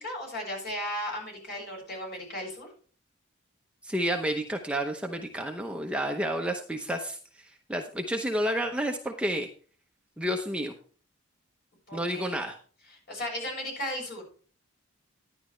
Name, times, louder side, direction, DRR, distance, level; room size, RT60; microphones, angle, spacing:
voice 1, 0.0-2.7 11.9-12.4 12.9-14.2, left 1 dB, 50° left, -1 dB, 6.9 m, -35 dB
voice 2, 3.8-7.2 7.7-9.5 10.2-10.7 11.9-12.6, equal, 5° right, 3 dB, 0.8 m, -30 dB
11.5 x 11.0 x 3.2 m, 0.41 s
head